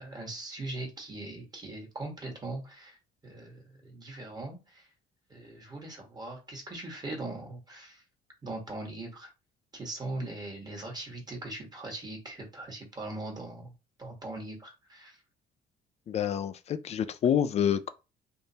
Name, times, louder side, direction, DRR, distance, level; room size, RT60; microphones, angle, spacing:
voice 1, 0.0-3.0 3.2-4.9 5.3-8.0 8.4-9.3 9.7-13.7 14.0-15.2, right 2 dB, 25° right, 1.4 m, -40 dB
voice 2, 16.1-17.9, left 9 dB, 40° left, 0.4 m, -27 dB
3.6 x 2.5 x 2.7 m
cardioid pair, 110°, 17 cm